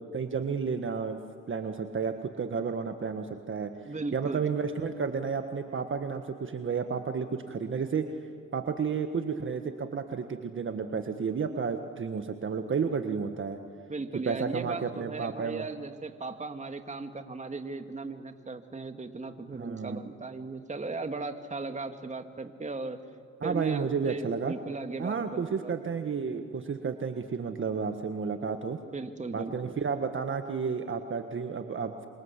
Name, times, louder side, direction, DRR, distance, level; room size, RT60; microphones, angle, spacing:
voice 1, 0.1-1.2 1.5-3.7 4.1-8.1 8.5-13.6 14.2-15.6 19.6-20.0 23.4-24.5 25.0-28.8 29.3-32.1, right 5 dB, 40° right, 7 dB, 1.6 m, -31 dB
voice 2, 3.9-4.4 13.9-23.0 23.4-25.7 28.9-29.7, right 3 dB, 25° right, 7 dB, 2.2 m, -37 dB
28.0 x 25.5 x 8.4 m, 2.3 s
cardioid pair, 90°, 30 cm